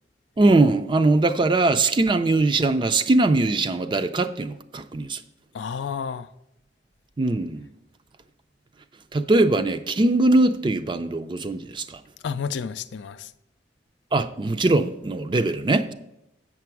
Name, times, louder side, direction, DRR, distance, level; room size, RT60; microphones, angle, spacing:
voice 1, 0.4-5.2 7.2-7.7 9.1-12.0 14.1-15.9, right 2 dB, 25° right, 0.4 m, -21 dB
voice 2, 5.5-6.3 12.2-13.3, left 6 dB, 80° left, 0.4 m, -31 dB
8.3 x 5.9 x 4.6 m
head